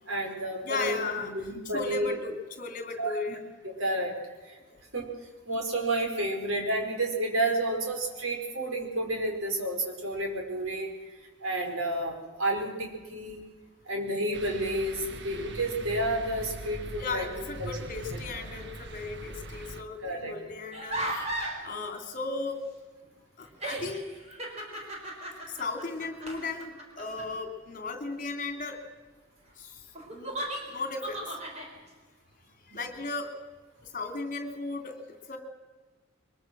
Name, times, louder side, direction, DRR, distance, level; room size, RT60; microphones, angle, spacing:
voice 1, 0.1-2.1 3.0-3.2 3.6-4.2 4.4-4.6 4.9-5.1 5.5-10.9 11.4-13.4 13.8-17.3 17.6-17.7 20.0-20.3 32.7-32.8, right 1 dB, 80° right, 2 dB, 4.9 m, -30 dB
voice 2, 0.6-1.3 1.7-3.4 17.0-21.3 21.6-22.7 23.4-24.0 25.6-28.8 29.6-29.8 30.1-30.4 30.7-31.2 32.7-33.4 33.9-35.0 35.3-35.4, left 3 dB, 40° left, 5 dB, 3.0 m, -36 dB
sound 1, 14.3-19.8, right 1 dB, 55° right, 1.4 m, -41 dB
sound 2, 20.7-21.6 23.0-23.1 23.5-27.3 30.0-31.7, right 1 dB, 30° right, 4.8 m, -36 dB
23.0 x 22.0 x 6.2 m, 1.3 s
head